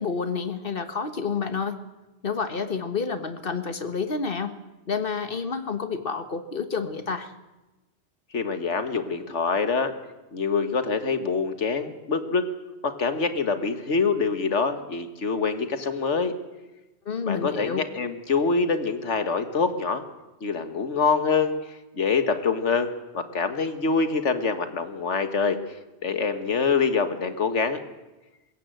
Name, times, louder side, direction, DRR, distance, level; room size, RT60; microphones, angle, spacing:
voice 1, 0.0-1.8 2.2-4.5 4.9-7.3 17.0-17.8, left 5 dB, 50° left, 10 dB, 1.5 m, -29 dB
voice 2, 8.3-9.9 10.3-12.5 12.8-16.3 17.3-20.0 20.4-25.6 26.0-27.8, left 5 dB, 85° left, 9 dB, 1.8 m, -25 dB
21.0 x 16.5 x 7.8 m, 1.1 s
omnidirectional pair, 1.2 m